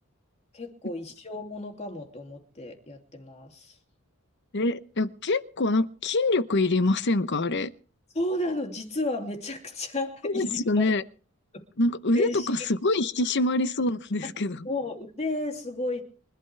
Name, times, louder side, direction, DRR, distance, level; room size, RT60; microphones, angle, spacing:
voice 1, 0.5-3.8 8.1-10.9 12.1-12.5 14.6-16.0, left 2 dB, 30° left, 2.9 m, -33 dB
voice 2, 4.5-7.7 10.2-11.0 11.8-14.7, left 2 dB, 55° left, 0.9 m, -25 dB
26.5 x 12.0 x 3.4 m
head